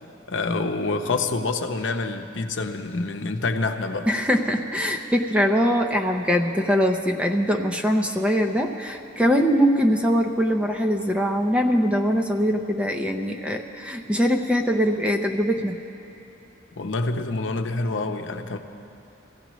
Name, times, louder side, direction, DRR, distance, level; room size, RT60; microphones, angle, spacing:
voice 1, 0.3-4.1 16.8-18.6, left 3 dB, 80° left, 5 dB, 0.8 m, -27 dB
voice 2, 4.1-15.8, equal, 5° right, 3 dB, 0.6 m, -22 dB
23.5 x 15.5 x 3.1 m, 2.7 s
head